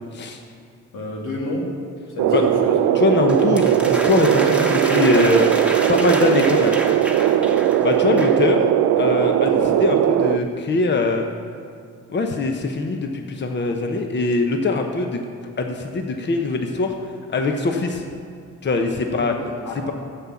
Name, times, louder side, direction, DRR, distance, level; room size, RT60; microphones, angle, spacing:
voice 1, 0.9-1.7 2.2-2.8 9.5-9.8 19.1-19.7, left 1 dB, 90° left, -2 dB, 2.5 m, -29 dB
sound 1, 2.2-10.4, right 11 dB, 85° right, 0.5 m, -19 dB
voice 2, 2.9-5.5 5.9-6.8 7.8-8.6 9.0-11.3 12.1-15.2 15.6-16.9 17.3-18.0 18.6-19.3, left 3 dB, 35° left, 4 dB, 1.0 m, -22 dB
sound 2, 3.3-8.5, right 1 dB, 5° right, 1.3 m, -29 dB
10.0 x 7.6 x 7.1 m, 2.3 s
cardioid pair, 90°, 30 cm